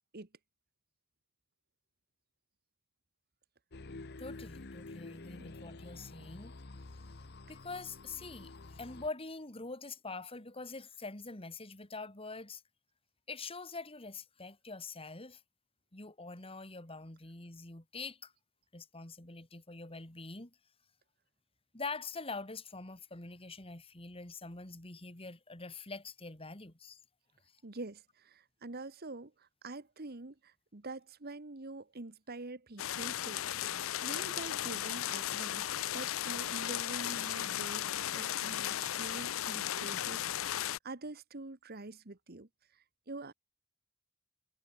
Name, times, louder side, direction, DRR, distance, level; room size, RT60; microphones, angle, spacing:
sound 1, 3.7-9.1, left 2 dB, 50° left, 1.0 m, -49 dB
voice 1, 4.2-6.5 7.5-12.6 13.3-15.4 15.9-18.3 18.7-20.6 21.7-27.0, left 3 dB, 25° left, 2.5 m, -44 dB
voice 2, 27.6-33.7 34.0-35.7 35.9-37.9 38.1-43.3, right 2 dB, 45° right, 1.3 m, -46 dB
sound 2, 32.8-40.8, left 12 dB, 65° left, 0.5 m, -36 dB
head